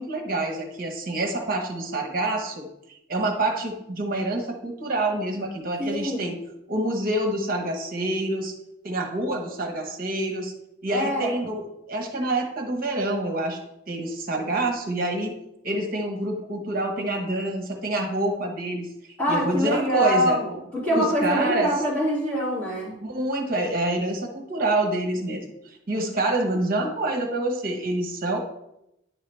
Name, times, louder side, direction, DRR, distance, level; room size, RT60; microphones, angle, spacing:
voice 1, 0.0-2.6 3.1-6.4 6.7-8.5 8.8-10.5 10.8-13.6 13.9-15.3 15.6-18.9 19.3-20.4 20.9-21.7 23.0-28.4, right 1 dB, 45° right, 2 dB, 1.2 m, -27 dB
voice 2, 5.8-6.2 10.9-11.3 19.2-20.6 20.8-23.0, equal, 10° left, -7 dB, 2.7 m, -24 dB
10.0 x 4.7 x 3.4 m, 0.84 s
head